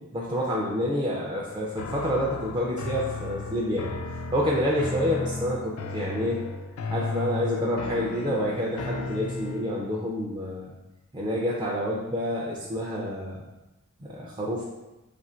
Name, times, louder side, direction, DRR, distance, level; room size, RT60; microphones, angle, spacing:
voice 1, 0.1-3.9 4.3-6.4 6.9-10.7 11.1-13.4 14.0-14.7, equal, 20° right, -5 dB, 0.4 m, -28 dB
sound 1, 1.8-9.8, left 3 dB, 70° left, 0.3 m, -35 dB
2.9 x 2.5 x 4.3 m, 1.0 s
head